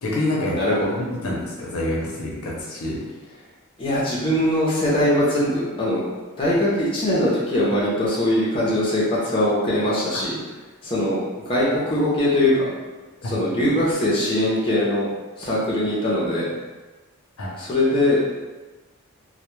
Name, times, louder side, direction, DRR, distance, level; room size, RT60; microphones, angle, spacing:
voice 1, 0.0-0.6 1.0-3.0 13.2-13.4 17.4-17.5, left 1 dB, 80° left, -4 dB, 0.6 m, -27 dB
voice 2, 0.5-1.0 3.8-6.1 6.4-10.4 10.8-12.7 13.2-15.1 15.4-16.5 17.6-18.2, left 1 dB, 25° left, -7 dB, 0.5 m, -21 dB
2.1 x 2.1 x 3.0 m, 1.3 s
head